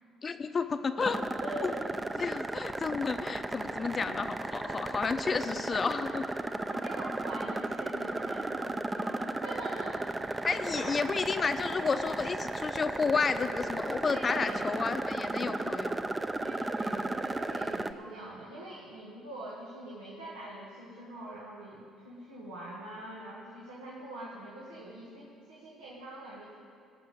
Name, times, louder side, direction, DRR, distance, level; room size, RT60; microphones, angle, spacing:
voice 1, 0.2-1.2 1.6-1.7 2.2-6.2 10.4-16.2, left 5 dB, 40° left, 9 dB, 0.7 m, -31 dB
sound 1, 1.0-17.9, right 2 dB, 20° right, 0.7 m, -35 dB
voice 2, 1.4-2.4 2.8-3.0 4.6-5.0 6.7-11.0 14.0-14.6 16.4-26.6, right 1 dB, 90° right, -5 dB, 1.7 m, -44 dB
17.0 x 5.9 x 7.9 m, 2.6 s
hypercardioid pair, 55°, 0 cm